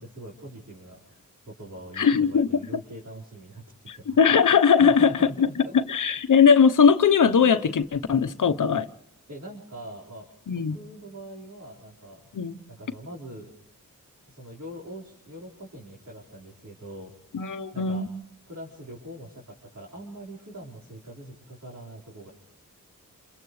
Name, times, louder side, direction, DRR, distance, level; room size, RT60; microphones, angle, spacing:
voice 1, 0.0-3.6 3.9-4.2 4.8-5.7 9.3-12.3 12.7-13.5 14.3-17.1 17.7-18.1 18.5-22.3, right 1 dB, 55° right, 4.9 m, -42 dB
voice 2, 2.0-2.5 3.9-5.1 5.4-5.5 5.7-8.9 10.5-10.8 12.3-12.5 17.3-18.1, left 6 dB, 65° left, 1.0 m, -20 dB
30.0 x 28.5 x 3.3 m
wide cardioid pair, 90°, 33 cm